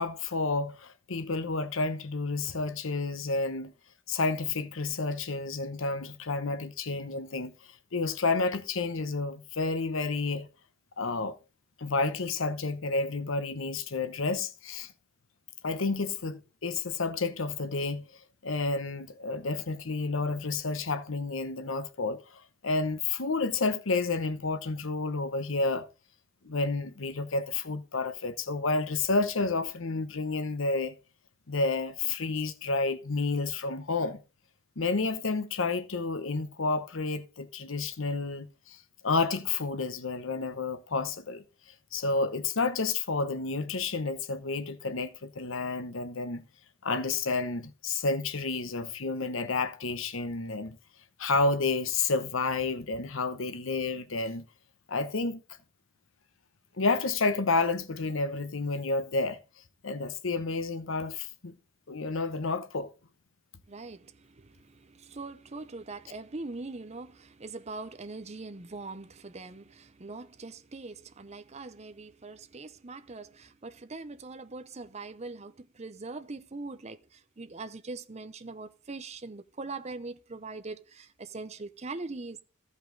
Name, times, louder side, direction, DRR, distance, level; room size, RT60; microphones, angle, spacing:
voice 1, 0.0-3.7 4.1-7.5 7.9-10.5 11.0-11.4 11.8-14.9 15.6-18.0 18.4-25.9 26.4-30.9 31.5-34.2 34.8-41.4 41.9-46.4 46.8-50.8 51.2-54.4 54.9-55.4 56.8-59.4 59.8-61.5 61.9-62.9, left 3 dB, 75° left, 0.9 m, -30 dB
voice 2, 63.7-82.4, right 3 dB, 35° right, 0.7 m, -42 dB
15.0 x 5.4 x 3.8 m
head